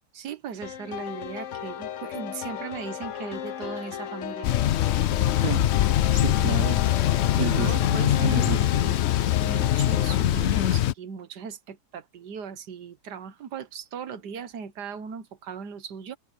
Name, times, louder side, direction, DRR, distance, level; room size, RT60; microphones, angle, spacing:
voice 1, 0.1-4.6 7.3-9.0 9.4-16.2, right 6 dB, 90° right, 1.8 m, -38 dB
sound 1, 0.6-10.2, left 9 dB, 55° left, 1.1 m, -36 dB
Thunder / Bicycle, 4.4-10.9, left 12 dB, 85° left, 0.6 m, -23 dB
voice 2, 5.4-5.7 6.1-6.8 7.4-8.9, right 8 dB, 65° right, 1.6 m, -32 dB
omnidirectional pair, 1.7 m